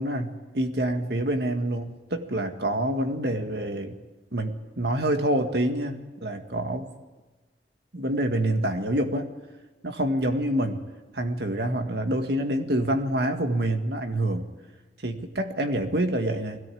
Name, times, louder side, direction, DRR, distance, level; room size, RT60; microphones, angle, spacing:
voice 1, 0.0-4.0 4.3-6.9 7.9-9.3 9.8-10.8 11.2-14.4 15.0-16.6, right 1 dB, 65° right, 6 dB, 1.9 m, -27 dB
21.5 x 17.0 x 8.7 m, 1.2 s
head